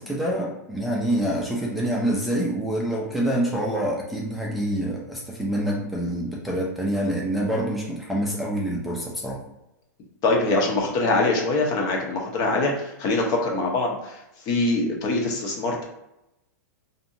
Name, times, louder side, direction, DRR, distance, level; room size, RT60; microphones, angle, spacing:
voice 1, 0.0-9.4, right 1 dB, ahead, -4 dB, 0.5 m, -26 dB
voice 2, 10.2-14.2 14.5-15.8, left 2 dB, 40° left, 0 dB, 0.8 m, -23 dB
2.6 x 2.6 x 2.6 m, 0.90 s
hypercardioid pair, 130°, 10 cm